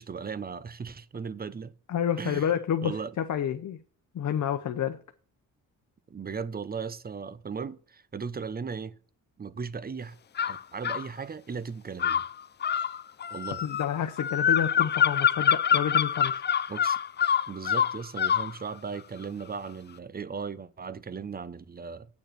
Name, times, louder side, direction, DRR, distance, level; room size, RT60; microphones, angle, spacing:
voice 1, 0.0-1.7 2.2-2.5 2.8-3.2 6.1-9.0 9.4-10.2 10.4-12.2 13.3-13.6 16.7-17.0 17.5-22.1, right 5 dB, 25° right, 0.7 m, -37 dB
voice 2, 1.9-3.8 4.1-5.0 13.6-16.4, left 9 dB, 55° left, 0.9 m, -29 dB
sound 1, 10.4-11.1 12.0-18.5, left 8 dB, 30° left, 0.4 m, -25 dB
8.5 x 6.5 x 6.7 m
cardioid pair, 110°, 34 cm